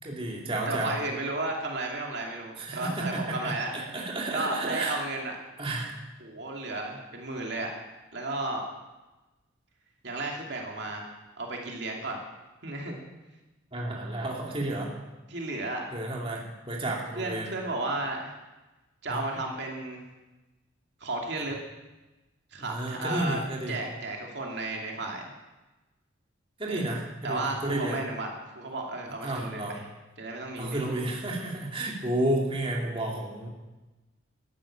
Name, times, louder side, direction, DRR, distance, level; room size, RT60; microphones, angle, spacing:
voice 1, 0.0-0.9 2.6-5.0 5.6-5.9 13.7-14.9 15.9-17.4 19.1-19.2 22.7-23.7 26.6-28.0 29.2-29.8 30.6-33.5, right 1 dB, 30° right, -2 dB, 2.7 m, -31 dB
voice 2, 0.7-3.7 4.3-5.4 6.2-7.7 8.1-8.6 10.0-11.1 11.4-12.2 12.6-13.0 15.3-15.8 17.2-18.3 19.0-20.0 21.0-21.6 22.5-23.4 23.7-25.3 26.7-26.9 27.2-28.3 28.6-29.9 30.2-31.0, right 2 dB, 60° right, 0 dB, 2.6 m, -33 dB
14.0 x 11.0 x 8.8 m, 1.1 s
head